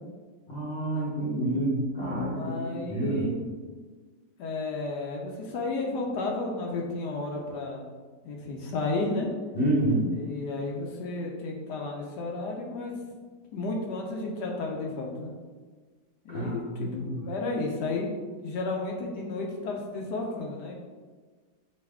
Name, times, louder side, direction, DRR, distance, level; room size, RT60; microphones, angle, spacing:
voice 1, 0.5-2.5 2.9-3.2 9.5-10.1 16.3-17.2, right 1 dB, 50° left, -8 dB, 0.9 m, -28 dB
voice 2, 2.3-3.4 4.4-7.9 8.2-9.3 10.1-13.0 13.5-15.3 16.2-18.1 18.4-20.7, left 3 dB, 75° left, 0 dB, 1.2 m, -32 dB
4.6 x 2.8 x 3.4 m, 1.4 s
omnidirectional pair, 1.9 m